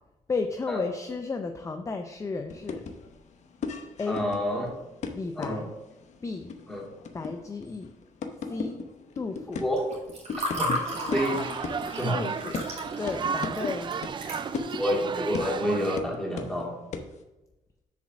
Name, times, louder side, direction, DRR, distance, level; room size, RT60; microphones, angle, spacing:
voice 1, 0.3-2.8 4.0-4.3 5.1-5.7 6.2-6.5 7.1-7.9 8.5-8.8 9.2-9.6 12.1-12.6 13.0-14.0, left 4 dB, 20° left, 6 dB, 0.5 m, -33 dB
sound 1, 2.5-10.8 11.1-16.6 16.9-17.2, left 5 dB, 55° left, 0.9 m, -37 dB
voice 2, 4.1-4.7 5.4-5.6 6.7-6.9 9.6-9.8 10.6-11.4 11.9-12.2 14.8-16.8, equal, 5° left, -3 dB, 2.3 m, -28 dB
Water / Fill (with liquid), 9.8-14.9, equal, 50° right, 2.4 m, -34 dB
sound 2, 10.8-16.0, right 6 dB, 35° right, 0.4 m, -34 dB
6.9 x 5.0 x 6.0 m, 1.0 s
cardioid pair, 135°, 14 cm